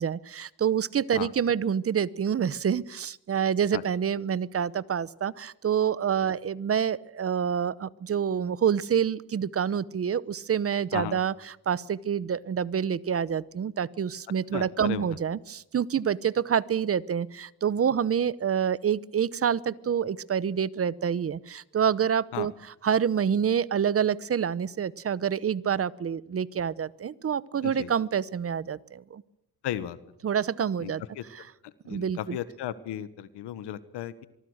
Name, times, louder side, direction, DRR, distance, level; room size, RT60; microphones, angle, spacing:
voice 1, 0.0-29.2 30.2-31.0 31.3-31.5 31.9-32.4, right 8 dB, 35° right, 20 dB, 0.9 m, -27 dB
voice 2, 14.5-15.1 22.3-22.5 27.6-27.9 29.6-30.0 30.8-31.2 31.8-34.3, left 12 dB, 90° left, 15 dB, 1.4 m, -35 dB
25.0 x 23.0 x 6.5 m, 0.78 s
cardioid pair, 110°, 40 cm